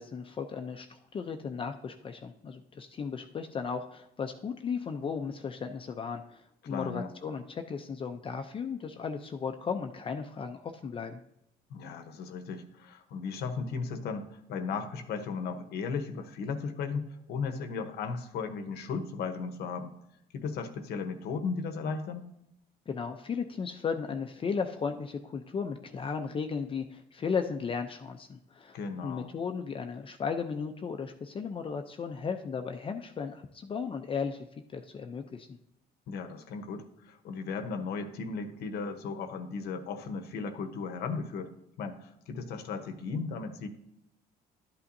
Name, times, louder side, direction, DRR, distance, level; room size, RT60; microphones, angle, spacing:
voice 1, 0.0-11.2 22.9-28.8 29.0-34.5 34.7-35.5, left 6 dB, 30° left, 6 dB, 0.5 m, -35 dB
voice 2, 6.6-7.1 11.7-19.9 20.3-22.3 28.7-29.3 36.1-41.5 41.8-43.7, left 5 dB, 75° left, 8 dB, 0.9 m, -36 dB
12.0 x 8.5 x 2.6 m, 0.81 s
cardioid pair, 110°, 17 cm